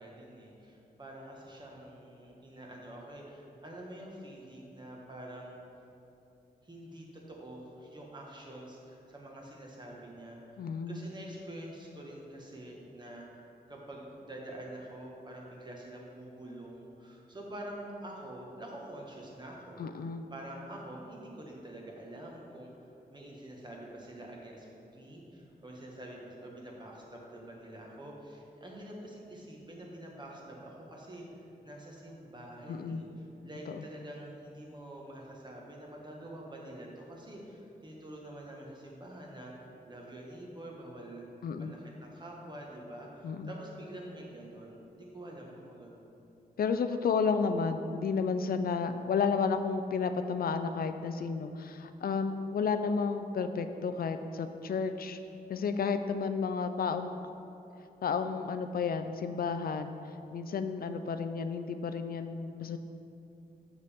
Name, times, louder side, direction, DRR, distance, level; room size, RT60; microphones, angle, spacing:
voice 1, 0.0-5.6 6.6-13.2 13.7-19.8 20.3-31.2 31.6-33.1 33.4-41.3 41.5-46.2, right 1 dB, 25° right, -2 dB, 1.3 m, -46 dB
voice 2, 10.6-11.1 19.8-20.2 32.7-33.0 33.7-33.8 41.4-41.7 43.2-43.5 46.6-55.2 55.5-57.1 58.0-59.9 60.3-62.8, left 5 dB, 65° left, 9 dB, 0.4 m, -32 dB
7.1 x 6.5 x 3.5 m, 2.8 s
wide cardioid pair, 95°, 16 cm